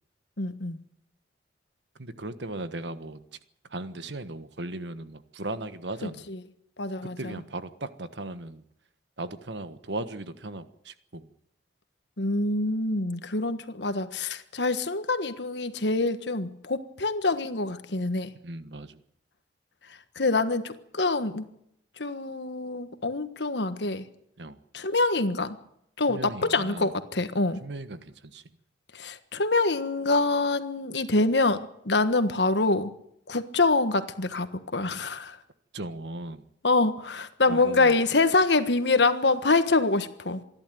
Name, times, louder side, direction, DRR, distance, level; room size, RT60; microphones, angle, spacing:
voice 1, 0.4-0.8 6.3-6.4 6.8-7.3 12.2-18.3 20.1-21.4 22.0-24.0 24.7-25.6 26.0-27.6 28.9-31.6 31.8-32.9 33.3-35.4 36.6-40.4, left 3 dB, 75° left, 10 dB, 1.5 m, -25 dB
voice 2, 2.0-3.2 3.7-6.2 7.0-8.6 9.2-11.3 18.4-19.0 24.4-24.6 26.1-26.9 27.6-28.4 35.7-36.4 37.5-38.0, right 2 dB, 80° right, 12 dB, 1.4 m, -37 dB
26.5 x 11.5 x 9.4 m, 0.76 s
head